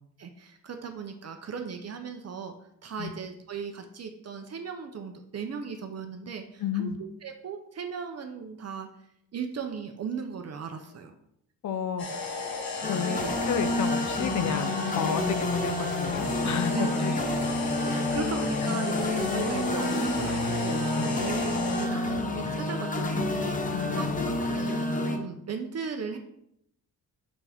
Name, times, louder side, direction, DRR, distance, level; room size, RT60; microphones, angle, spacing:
voice 1, 0.2-2.5 2.8-8.9 9.3-11.1 13.1-13.3 16.7-16.9 17.8-26.2, right 6 dB, 45° right, 5 dB, 0.8 m, -37 dB
voice 2, 6.6-7.0 11.6-12.1 12.9-13.2 13.5-17.1 21.0-21.2 23.7-24.1, left 7 dB, 50° left, 10 dB, 0.8 m, -31 dB
sound 1, 12.0-21.9, left 3 dB, 75° left, 1.7 m, -35 dB
sound 2, 12.8-25.2, left 2 dB, 20° left, 0.8 m, -29 dB
6.2 x 5.9 x 3.6 m, 0.75 s
cardioid pair, 120°, 37 cm